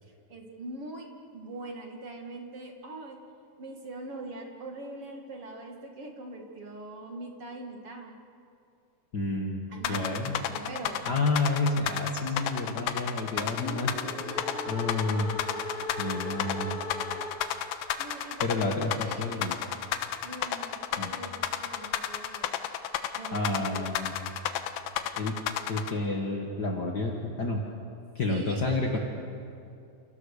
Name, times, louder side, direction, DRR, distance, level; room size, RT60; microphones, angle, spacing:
voice 1, 0.0-3.2 3.6-8.1 9.7-11.1 13.3-15.0 15.4-15.7 16.0-16.2 17.4-17.6 18.0-19.8 20.2-22.7 23.2-24.3 28.3-29.0, right 2 dB, 40° right, 1 dB, 2.3 m, -43 dB
voice 2, 9.1-10.4 11.0-14.0 14.7-15.3 16.0-16.8 18.4-19.5 21.0-21.1 23.3-24.1 25.1-25.4 25.7-27.6 28.1-29.0, left 2 dB, 65° left, 0 dB, 1.0 m, -30 dB
sound 1, 9.8-25.9, left 11 dB, 80° left, 3.3 m, -32 dB
sound 2, 13.5-17.7, left 2 dB, 45° left, 3.2 m, -38 dB
29.0 x 28.5 x 6.8 m, 2.5 s
omnidirectional pair, 5.3 m